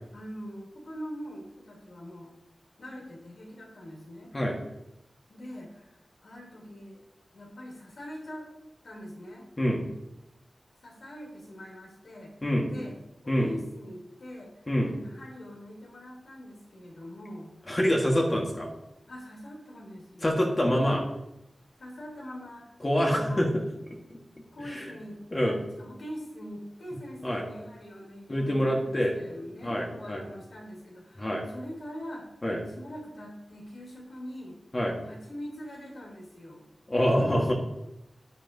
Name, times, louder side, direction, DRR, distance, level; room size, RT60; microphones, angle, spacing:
voice 1, 0.1-2.3 2.8-4.3 5.3-7.0 7.3-8.5 8.8-9.5 10.8-12.3 12.6-13.0 13.2-17.5 19.1-20.6 21.8-23.5 24.5-32.3 32.7-34.6 35.0-36.6, equal, 85° left, -2 dB, 3.2 m, -43 dB
voice 2, 17.7-18.7 20.2-21.0 22.8-23.6 24.1-24.2 24.7-24.9 25.3-25.6 27.2-27.4 28.3-29.2 29.6-30.2 31.2-31.4 32.4-32.6 34.7-34.9 36.9-37.5, equal, 25° left, -1 dB, 1.5 m, -26 dB
10.0 x 9.7 x 2.7 m, 0.89 s
wide cardioid pair, 100°, 0 cm